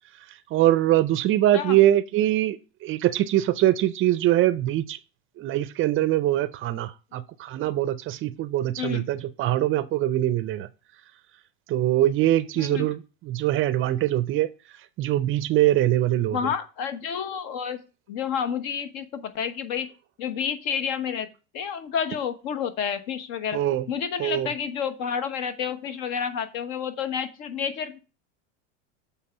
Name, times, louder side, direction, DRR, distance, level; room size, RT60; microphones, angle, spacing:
voice 1, 0.5-5.0 5.4-10.7 11.7-14.5 15.0-16.4 23.5-23.9 24.2-24.5, right 13 dB, 35° right, 0.5 m, -23 dB
voice 2, 12.6-12.9 16.3-17.8 18.1-19.9 20.2-21.3 21.5-23.6 23.9-28.0, left 7 dB, 60° left, 1.1 m, -30 dB
7.4 x 3.5 x 5.8 m
supercardioid pair, 115°, 36 cm